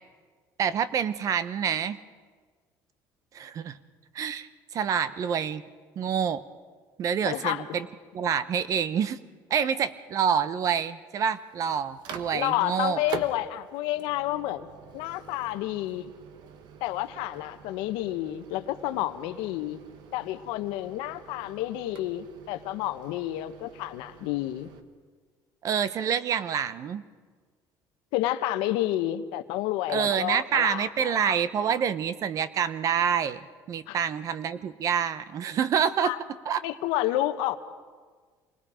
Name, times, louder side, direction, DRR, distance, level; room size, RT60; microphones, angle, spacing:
voice 1, 0.6-2.0 3.3-3.8 4.1-5.6 6.0-6.4 7.0-7.9 8.1-9.2 9.5-13.0 25.6-27.0 29.9-36.1 36.4-36.6, right 8 dB, 45° right, 15 dB, 0.8 m, -27 dB
voice 2, 7.2-7.6 12.3-14.7 14.9-16.1 16.8-19.8 20.1-24.7 28.1-31.3 33.9-34.0 36.0-36.2 36.6-37.6, left 14 dB, 90° left, 10 dB, 1.1 m, -30 dB
Microwave oven, 11.2-24.8, right 6 dB, 65° right, 1.4 m, -45 dB
27.0 x 20.5 x 5.0 m, 1.5 s
cardioid pair, 140°, 8 cm